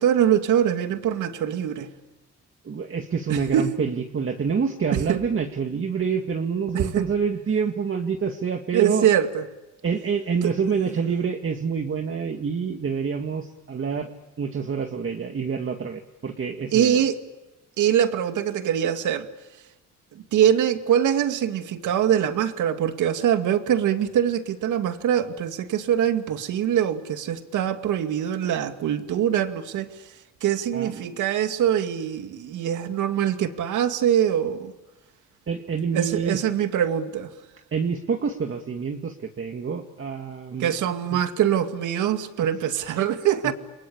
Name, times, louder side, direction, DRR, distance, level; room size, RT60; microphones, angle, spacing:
voice 1, 0.0-1.9 3.3-3.7 4.9-5.2 6.7-7.0 8.7-9.4 16.7-17.2 17.8-19.3 20.1-29.9 30.4-34.7 35.9-37.3 40.6-43.5, right 10 dB, 80° right, 8 dB, 2.2 m, -23 dB
voice 2, 2.6-9.1 9.8-14.1 14.4-17.0 30.7-31.2 35.5-36.5 37.7-40.7 43.4-43.5, right 6 dB, 45° right, 4 dB, 2.2 m, -27 dB
29.0 x 23.0 x 8.7 m, 1.1 s
cardioid pair, 90°, 30 cm